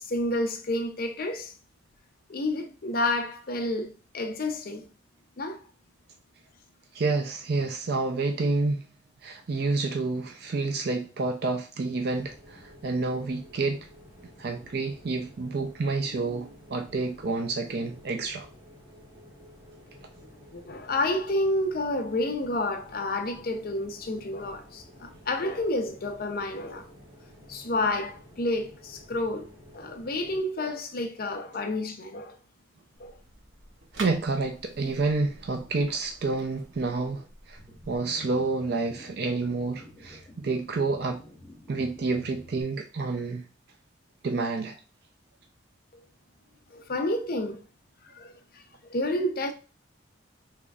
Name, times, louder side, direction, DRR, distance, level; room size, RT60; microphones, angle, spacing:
voice 1, 0.0-1.5 2.3-4.8 5.4-5.6 20.5-26.9 27.5-29.5 29.7-32.4 33.0-33.2 45.9-46.0 46.7-47.6 48.1-48.3 48.8-49.5, left 1 dB, 50° left, 0.5 m, -30 dB
voice 2, 6.9-8.9 9.2-13.8 14.4-18.5 34.0-37.6 37.9-41.2 41.7-43.4 44.2-44.8, right 3 dB, 55° right, 0.4 m, -29 dB
sound 1, 12.0-30.4, equal, 30° right, 1.5 m, -52 dB
sound 2, 32.9-38.0, right 2 dB, 80° right, 0.8 m, -46 dB
sound 3, 37.6-42.6, left 1 dB, 10° left, 0.9 m, -50 dB
3.8 x 3.0 x 2.3 m
head